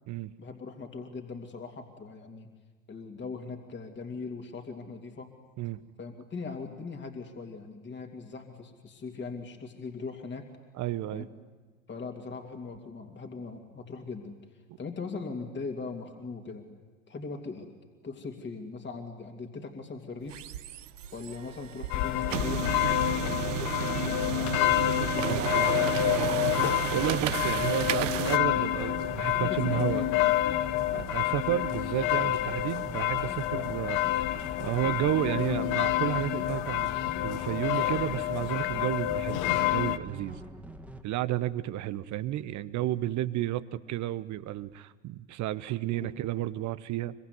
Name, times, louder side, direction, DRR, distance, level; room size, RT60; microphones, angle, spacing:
voice 1, 0.4-2.5 2.9-5.3 6.0-10.5 11.1-11.3 11.9-14.4 14.8-16.7 17.1-17.7 18.0-20.4 21.1-22.6 23.2-25.7 29.4-30.3 33.5-33.8 45.9-46.2, left 4 dB, 30° left, 3 dB, 2.8 m, -40 dB
voice 2, 10.8-11.3 26.9-30.0 30.9-34.0 34.6-40.4 41.0-47.1, right 13 dB, 50° right, 13 dB, 1.0 m, -32 dB
sound 1, 20.2-28.4, right 12 dB, 80° right, 0.9 m, -33 dB
sound 2, 21.9-40.0, left 14 dB, 55° left, 1.0 m, -28 dB
sound 3, 22.1-41.0, right 1 dB, 5° right, 2.3 m, -45 dB
25.0 x 23.5 x 9.6 m, 1.4 s
figure-of-eight pair, 65°, 38 cm